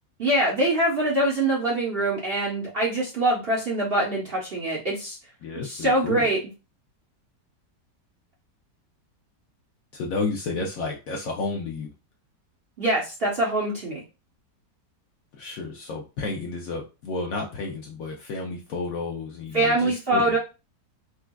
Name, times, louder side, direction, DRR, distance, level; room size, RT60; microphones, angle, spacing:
voice 1, 0.2-5.2 5.6-6.4 12.8-14.0 19.5-20.4, right 1 dB, 45° right, -5 dB, 0.8 m, -24 dB
voice 2, 5.4-6.3 9.9-11.9 15.3-20.4, left 3 dB, 65° left, 0 dB, 0.9 m, -31 dB
4.4 x 2.3 x 2.3 m, 0.30 s
omnidirectional pair, 1.9 m